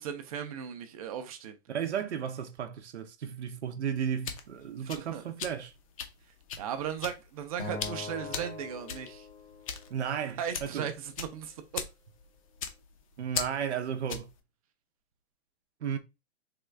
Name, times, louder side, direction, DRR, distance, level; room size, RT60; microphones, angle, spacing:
voice 1, 0.0-1.6 4.9-5.2 6.6-9.3 10.4-11.6, right 8 dB, 35° right, 0.6 m, -37 dB
voice 2, 1.7-5.7 9.9-10.9 13.2-14.3 15.8-16.0, right 8 dB, 90° right, 0.7 m, -34 dB
sound 1, 3.9-14.4, left 7 dB, 30° left, 0.5 m, -40 dB
Acoustic guitar, 7.6-10.0, left 4 dB, 75° left, 1.4 m, -42 dB
3.7 x 2.4 x 3.2 m
hypercardioid pair, 155°, 33 cm